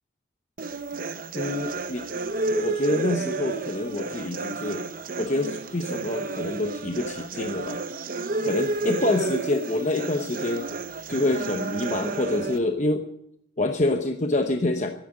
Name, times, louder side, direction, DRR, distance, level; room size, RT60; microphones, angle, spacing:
sound 1, 0.6-12.6, right 3 dB, 45° right, 0.8 m, -31 dB
voice 1, 1.3-2.1 2.6-4.9 5.2-7.8 8.4-10.7 11.1-13.1 13.6-14.9, left 2 dB, 40° left, 5 dB, 0.9 m, -26 dB
13.5 x 10.5 x 9.9 m, 0.74 s
head